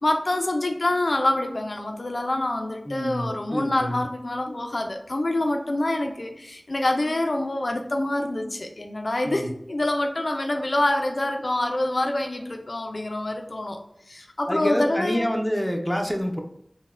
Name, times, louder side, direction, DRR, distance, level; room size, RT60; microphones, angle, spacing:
voice 1, 0.0-13.8 14.1-15.3, left 1 dB, 75° left, 4 dB, 0.4 m, -26 dB
voice 2, 2.8-4.1 9.2-9.5 14.5-16.4, equal, 5° left, 2 dB, 0.5 m, -27 dB
3.9 x 2.1 x 2.4 m, 0.77 s
wide cardioid pair, 45°, 0 cm